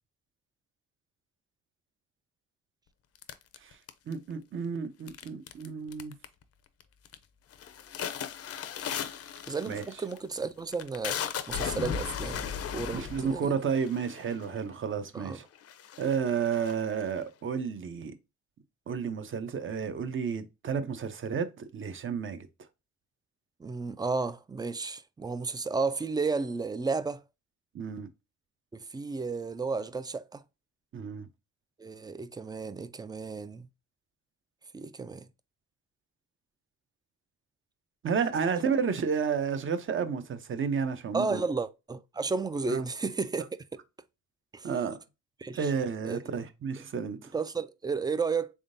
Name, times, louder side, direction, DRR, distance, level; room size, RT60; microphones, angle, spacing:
sound 1, 3.2-4.3 5.1-5.7 5.9-6.4 6.8-7.2 7.5-14.6 15.2-15.3 15.6-17.2, left 8 dB, 50° left, 0.6 m, -36 dB
voice 1, 4.1-6.1 9.7-9.8 12.9-15.5 16.0-18.2 18.9-22.5 27.7-28.1 30.9-31.3 38.0-41.4 42.7-42.9 44.6-45.0 45.5-47.3, right 6 dB, 40° right, 0.7 m, -31 dB
voice 2, 9.5-13.5 15.1-15.4 23.6-27.2 28.7-30.4 31.8-33.7 34.7-35.3 41.1-43.5 44.5-44.7 45.4-45.7 46.0-46.2 47.3-48.5, right 4 dB, 15° right, 0.3 m, -33 dB
3.6 x 3.6 x 2.6 m
cardioid pair, 90°, 30 cm